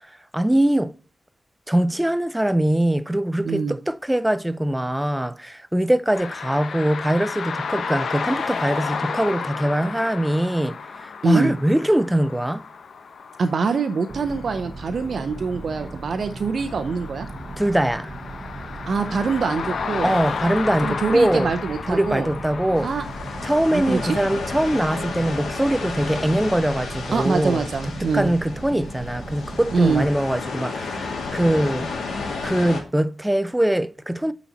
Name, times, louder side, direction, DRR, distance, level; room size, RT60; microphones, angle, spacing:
voice 1, 0.3-0.9 1.7-12.7 17.6-18.1 20.0-21.5 21.9-22.9 23.4-27.6 28.0-31.9 32.4-34.3, right 1 dB, 5° right, 0.4 m, -22 dB
voice 2, 3.4-3.8 11.2-11.5 13.4-17.3 18.9-20.1 20.8-22.3 22.8-23.0 23.7-24.1 27.1-28.3 29.7-30.0, right 5 dB, 60° right, 0.6 m, -24 dB
sound 1, 6.1-24.1, left 5 dB, 70° left, 0.8 m, -33 dB
sound 2, 14.1-30.1, right 2 dB, 25° right, 1.1 m, -37 dB
sound 3, 22.7-32.8, left 4 dB, 90° left, 1.7 m, -32 dB
8.5 x 4.1 x 4.1 m
wide cardioid pair, 110°, 0 cm